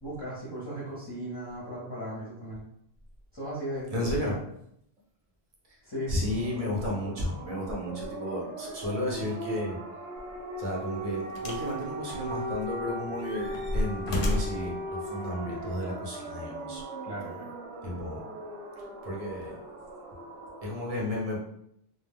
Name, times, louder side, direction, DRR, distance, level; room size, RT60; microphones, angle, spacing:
voice 1, 0.0-2.6 3.3-4.4 5.8-6.3 17.0-17.5, right 1 dB, 30° left, -8 dB, 0.6 m, -37 dB
voice 2, 3.9-4.3 6.1-9.8 10.6-16.8 17.8-18.2 19.0-19.6 20.6-21.4, left 1 dB, 40° right, -3 dB, 0.7 m, -33 dB
sound 1, 6.1-20.9, right 1 dB, 80° right, 1.0 m, -39 dB
sound 2, 10.2-10.4 11.4-11.7 12.1-12.8 13.2-14.7 15.6-15.7, left 1 dB, 65° left, 0.7 m, -32 dB
2.2 x 2.1 x 3.4 m, 0.74 s
omnidirectional pair, 1.1 m